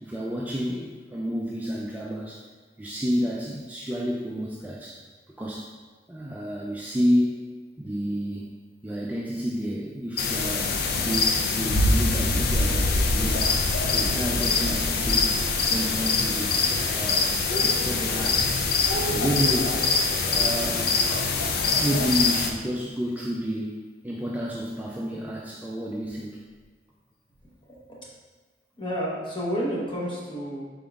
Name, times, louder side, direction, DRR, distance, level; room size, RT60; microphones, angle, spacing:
voice 1, 0.0-2.4 2.8-5.0 5.4-5.7 6.1-7.5 7.8-8.5 8.8-15.3 15.7-16.5 16.8-17.3 17.6-18.5 19.0-19.8 20.2-20.9 21.7-26.4, equal, 10° right, -3 dB, 0.3 m, -30 dB
sound 1, 10.2-22.5, left 3 dB, 60° left, 0.4 m, -24 dB
voice 2, 27.7-28.1 28.8-30.6, equal, 30° left, -5 dB, 1.0 m, -30 dB
5.2 x 3.8 x 2.4 m, 1.5 s
head